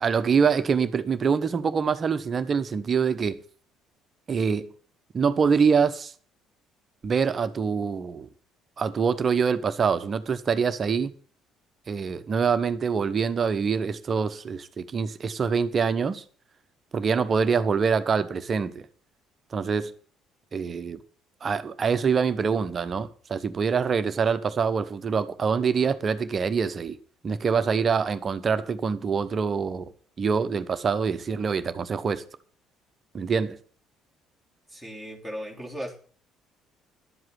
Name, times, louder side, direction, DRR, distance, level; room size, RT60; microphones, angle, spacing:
voice 1, 0.0-3.4 4.3-4.7 5.1-6.1 7.0-8.3 8.8-11.1 11.9-16.2 16.9-18.8 19.5-19.9 20.5-21.0 21.4-27.0 27.2-29.9 30.2-32.2 33.1-33.6, right 6 dB, 35° right, 1.1 m, -25 dB
voice 2, 34.7-36.0, equal, 5° left, 3.4 m, -36 dB
11.5 x 7.8 x 7.5 m
figure-of-eight pair, 50°, 0 cm